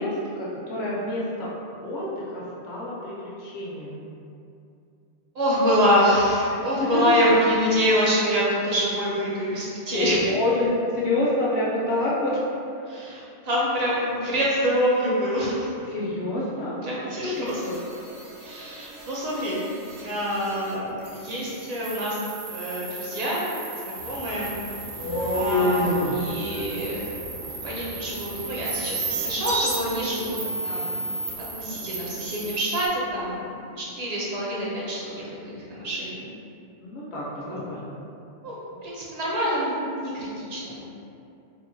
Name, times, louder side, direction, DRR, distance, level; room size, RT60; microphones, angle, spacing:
voice 1, 0.0-1.5 1.8-4.0 6.8-7.0 9.3-9.4 9.9-10.7 10.9-12.4 15.9-17.3 17.6-17.8 25.0-25.3 30.0-30.2 36.8-38.0, left 2 dB, 70° left, -5 dB, 0.9 m, -28 dB
voice 2, 5.3-10.3 12.9-15.7 16.8-17.6 18.4-19.6 20.0-22.2 22.5-23.4 23.7-24.5 25.3-25.8 26.1-27.0 27.3-30.9 31.5-36.2 37.4-37.6 38.4-38.5 38.8-40.8, equal, 45° right, -6 dB, 0.5 m, -26 dB
sound 1, 17.5-20.7 21.0-32.9, right 3 dB, 80° right, 0.9 m, -35 dB
sound 2, 24.0-31.9, left 1 dB, 90° left, 1.1 m, -31 dB
3.6 x 2.0 x 2.6 m, 2.6 s
omnidirectional pair, 1.2 m